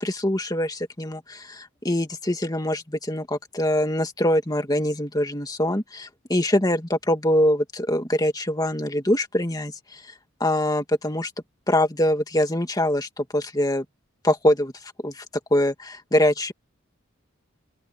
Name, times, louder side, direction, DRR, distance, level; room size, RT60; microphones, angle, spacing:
voice 1, 0.0-9.7 10.4-11.3 11.7-13.8 14.2-14.7 15.0-15.2 15.5-16.5, left 1 dB, 20° left, 2.1 m, -23 dB
open air
head